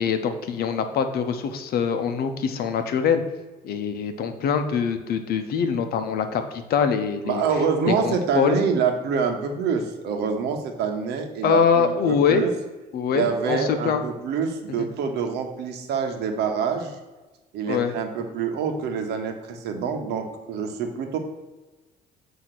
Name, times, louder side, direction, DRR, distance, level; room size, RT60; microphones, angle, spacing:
voice 1, 0.0-3.2 3.6-7.4 7.9-8.6 11.4-12.4 12.9-14.0 14.8-14.9 17.7-17.9, left 6 dB, 65° left, 8 dB, 0.8 m, -23 dB
voice 2, 7.2-12.5 13.1-17.0 17.5-21.2, right 6 dB, 80° right, 5 dB, 1.0 m, -26 dB
7.8 x 2.8 x 5.9 m, 1.2 s
cardioid pair, 110°, 17 cm